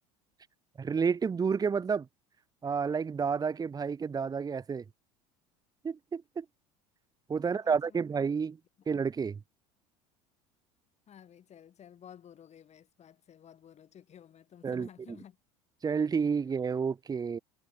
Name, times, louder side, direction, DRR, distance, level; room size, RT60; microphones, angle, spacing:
voice 1, 0.8-2.1 2.6-4.8 5.8-6.4 7.3-8.6 8.9-9.4 14.6-14.9 15.8-17.4, right 6 dB, 20° right, 0.7 m, -30 dB
voice 2, 7.4-8.0 11.1-15.4, left 9 dB, 40° left, 3.3 m, -53 dB
hypercardioid pair, 75°, 17 cm